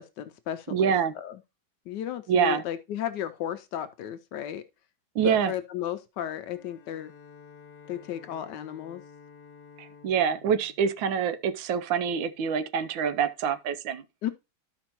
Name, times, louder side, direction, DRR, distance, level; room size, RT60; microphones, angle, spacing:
voice 1, 0.0-1.4 1.9-4.6 5.2-7.1 7.9-9.0 14.2-14.3, left 11 dB, 75° left, 1.1 m, -34 dB
voice 2, 0.7-1.1 2.3-2.6 5.1-5.5 9.8-14.0, right 7 dB, 75° right, 1.4 m, -26 dB
Bowed string instrument, 6.2-11.8, left 6 dB, 50° left, 1.0 m, -52 dB
12.5 x 5.2 x 2.9 m
omnidirectional pair, 2.1 m